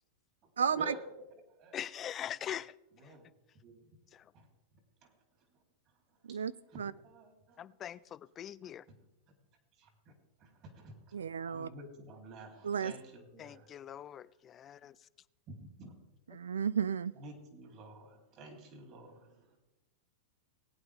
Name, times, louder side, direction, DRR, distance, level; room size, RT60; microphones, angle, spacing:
voice 1, 0.6-1.0 6.2-6.9 11.1-11.7 12.6-12.9 16.3-17.1, right 7 dB, 90° right, 19 dB, 0.4 m, -33 dB
voice 2, 1.7-2.7 3.0-3.1 4.1-4.2 7.6-8.8 13.4-14.9, left 10 dB, 30° left, 19 dB, 0.4 m, -42 dB
voice 3, 7.0-7.6 9.8-10.1 10.4-11.2 11.4-13.7 15.6-15.9 17.2-19.6, right 2 dB, 40° right, 3 dB, 3.4 m, -51 dB
20.0 x 8.9 x 3.5 m, 0.95 s
hypercardioid pair, 115°, 0 cm